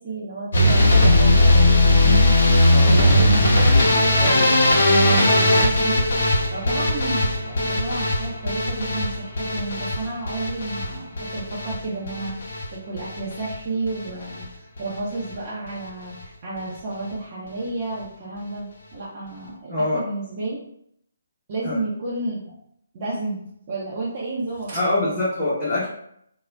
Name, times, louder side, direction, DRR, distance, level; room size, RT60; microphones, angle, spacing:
voice 1, 0.0-2.4 2.8-6.0 6.5-20.6 21.5-22.5 22.9-25.2, right 2 dB, 35° right, -8 dB, 0.7 m, -31 dB
sound 1, 0.5-12.7 13.0-13.5 13.9-14.4 14.8-15.0 15.3-15.4 15.7-15.8, left 1 dB, 55° left, 0.8 m, -18 dB
voice 2, 19.7-20.1 21.6-21.8 24.7-25.9, left 2 dB, 15° left, -11 dB, 0.9 m, -24 dB
2.4 x 2.1 x 3.3 m, 0.72 s
figure-of-eight pair, 140°, 0 cm